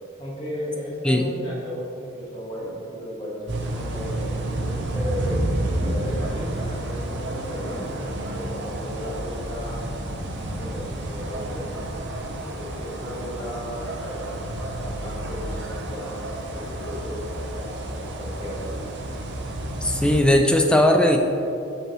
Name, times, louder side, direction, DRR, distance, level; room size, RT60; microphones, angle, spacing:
voice 1, 0.2-5.5 5.8-9.8 10.6-11.6 12.4-14.4 14.7-18.7, equal, 25° left, -6 dB, 1.3 m, -35 dB
sound 1, 3.5-20.2, right 1 dB, 55° right, 0.6 m, -30 dB
voice 2, 19.8-21.2, left 1 dB, 5° left, 2 dB, 0.3 m, -18 dB
6.3 x 5.4 x 3.0 m, 2.7 s
head